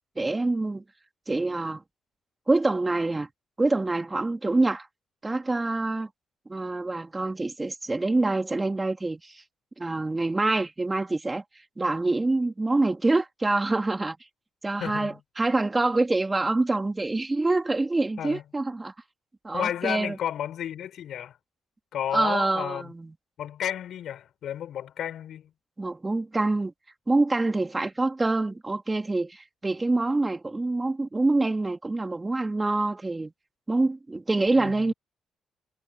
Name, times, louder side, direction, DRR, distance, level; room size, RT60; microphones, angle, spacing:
voice 1, 0.2-0.8 1.3-1.8 2.5-3.3 3.6-4.9 5.2-6.1 6.5-9.4 9.8-11.4 11.8-14.2 14.6-18.9 19.4-20.2 22.1-23.1 25.8-26.7 27.1-33.3 33.7-34.9, right 2 dB, 20° right, 3.6 m, -26 dB
voice 2, 14.8-15.2 18.2-18.4 19.5-21.4 21.9-22.9 23.4-25.5 34.5-34.8, left 10 dB, 70° left, 7.8 m, -32 dB
cardioid pair, 90°, 0 cm